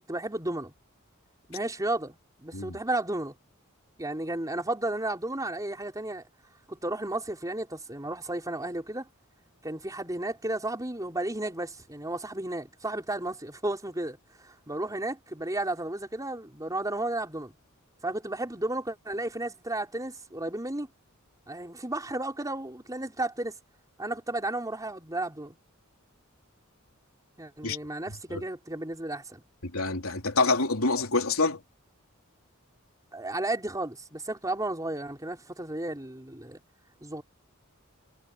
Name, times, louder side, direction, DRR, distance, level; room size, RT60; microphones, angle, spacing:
voice 1, 0.1-0.7 1.5-3.3 4.0-6.2 6.7-9.1 9.6-17.5 18.0-20.9 21.5-23.6 24.0-25.6 27.4-29.4 33.1-36.6 37.0-37.2, right 2 dB, 15° right, 4.8 m, -33 dB
voice 2, 28.1-28.4 29.6-31.6, left 3 dB, 80° left, 3.5 m, -27 dB
head